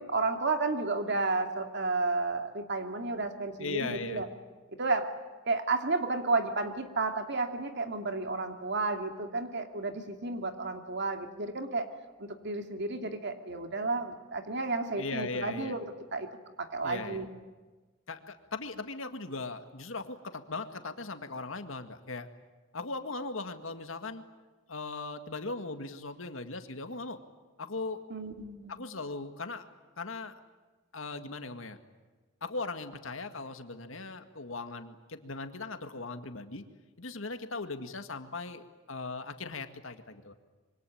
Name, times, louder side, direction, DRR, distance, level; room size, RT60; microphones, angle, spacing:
voice 1, 0.0-4.3 4.8-5.1 5.5-11.9 12.2-15.9 16.1-16.3 16.6-17.3 28.1-28.8, right 3 dB, 60° right, 5 dB, 2.6 m, -32 dB
voice 2, 3.6-4.2 15.0-15.8 16.8-17.3 18.1-22.3 22.7-24.2 24.7-27.2 27.6-28.0 28.7-29.7 30.0-30.4 30.9-31.8 32.4-36.6 37.0-40.3, left 3 dB, 80° left, 8 dB, 2.0 m, -39 dB
26.0 x 24.0 x 8.7 m, 1.3 s
head